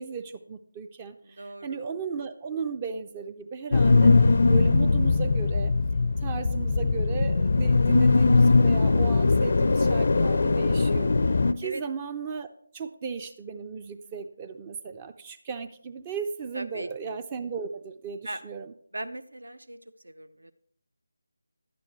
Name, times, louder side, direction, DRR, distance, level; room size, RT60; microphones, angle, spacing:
voice 1, 0.0-4.2 4.5-5.7 6.2-11.1 11.6-12.5 12.7-18.7, right 5 dB, 20° right, 10 dB, 0.4 m, -35 dB
voice 2, 1.2-1.8 11.6-11.8 16.5-16.9 18.2-18.4 18.9-19.8 20.0-20.5, right 1 dB, 70° right, 13 dB, 0.6 m, -38 dB
sound 1, 3.7-11.5, left 3 dB, 50° left, 0.4 m, -21 dB
11.0 x 9.1 x 3.1 m, 0.62 s
figure-of-eight pair, 160°, 0 cm